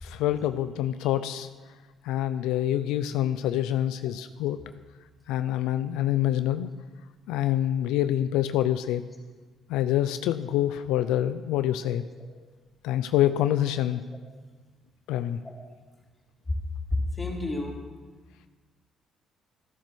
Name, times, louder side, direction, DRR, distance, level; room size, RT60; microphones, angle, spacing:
voice 1, 0.0-1.5 2.0-4.6 5.3-6.7 7.3-9.0 9.7-12.0 12.8-14.0 15.1-15.4, left 12 dB, 85° left, 11 dB, 0.5 m, -26 dB
voice 2, 16.9-17.8, left 2 dB, 15° left, -3 dB, 4.1 m, -30 dB
13.5 x 10.5 x 6.2 m, 1.3 s
supercardioid pair, 80°, 0 cm